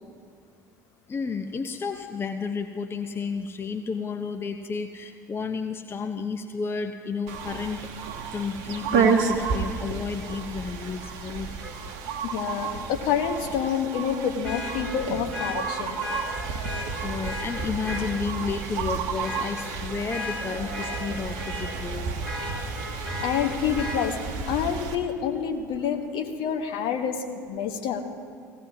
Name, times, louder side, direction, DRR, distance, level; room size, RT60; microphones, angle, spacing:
voice 1, 1.1-7.9 8.3-11.5 16.5-16.6 17.0-22.1, left 5 dB, 25° left, 7 dB, 0.7 m, -32 dB
sound 1, 7.3-25.0, right 5 dB, 60° right, 0.9 m, -31 dB
Vehicle horn car horn honking, 11.6-11.7 14.4-18.1 18.6-18.8 19.2-21.8 22.2-24.0 25.8-25.9, left 1 dB, 80° left, 2.9 m, -36 dB
voice 2, 12.2-16.0 23.2-24.2 24.5-28.0, left 8 dB, 55° left, 5 dB, 1.1 m, -28 dB
18.5 x 16.0 x 2.8 m, 2.2 s
figure-of-eight pair, 60°, 10 cm